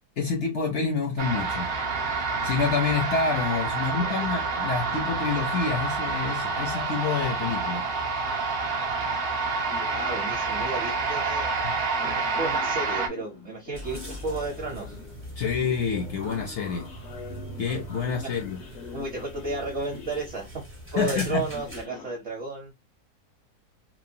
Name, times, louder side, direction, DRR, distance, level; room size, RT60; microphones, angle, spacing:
voice 1, 0.2-1.7 2.4-7.9 11.6-11.8 15.4-16.9 17.6-18.6 21.0-21.5, left 5 dB, 65° left, 0.7 m, -28 dB
sound 1, 1.2-13.1, right 4 dB, 75° right, 0.5 m, -28 dB
voice 2, 3.7-4.3 9.9-11.5 12.0-15.0 18.9-20.5 20.9-22.7, right 2 dB, 55° right, 0.9 m, -33 dB
sound 2, 6.5-7.5 8.4-8.5 8.9-9.3 9.7-11.0 12.0-22.1, left 5 dB, 90° left, 1.3 m, -45 dB
sound 3, 13.7-21.9, right 1 dB, 15° right, 0.4 m, -41 dB
2.9 x 2.1 x 2.5 m
omnidirectional pair, 1.6 m